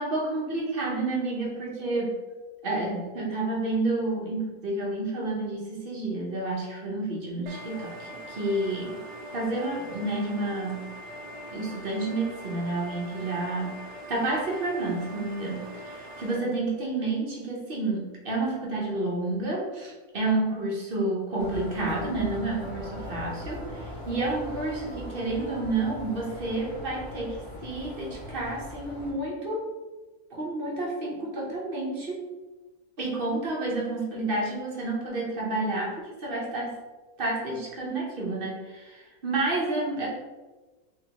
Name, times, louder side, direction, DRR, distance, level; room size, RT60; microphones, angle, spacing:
voice 1, 0.0-2.1 2.6-9.0 9.3-10.9 11.5-29.6 30.3-32.2 33.0-36.7 37.2-40.1, right 2 dB, 45° right, -3 dB, 0.8 m, -30 dB
sound 1, 7.5-16.4, right 1 dB, 90° right, 1.2 m, -42 dB
sound 2, 21.4-29.1, equal, 50° left, 1.3 m, -40 dB
3.9 x 3.0 x 2.8 m, 1.2 s
omnidirectional pair, 1.7 m